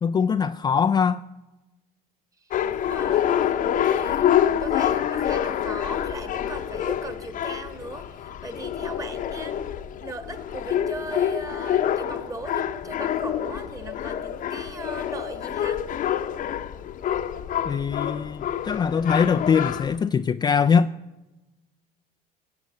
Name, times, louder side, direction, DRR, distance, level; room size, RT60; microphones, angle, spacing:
voice 1, 0.0-1.2 17.6-20.9, left 6 dB, 25° left, 0.4 m, -22 dB
voice 2, 2.4-9.6 10.0-15.9, right 2 dB, 20° right, 1.5 m, -38 dB
sound 1, 2.5-20.0, left 10 dB, 45° left, 0.8 m, -27 dB
15.5 x 8.1 x 8.3 m
supercardioid pair, 105°, 18 cm